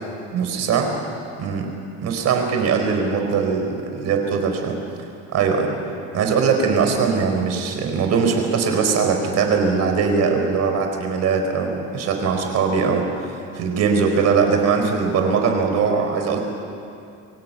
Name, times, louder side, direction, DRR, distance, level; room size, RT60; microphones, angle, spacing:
voice 1, 0.3-0.9 1.4-1.7 2.0-4.8 5.3-5.7 6.1-16.4, right 5 dB, 55° right, 3 dB, 4.4 m, -21 dB
25.0 x 17.5 x 8.8 m, 2.6 s
cardioid pair, 135°, 32 cm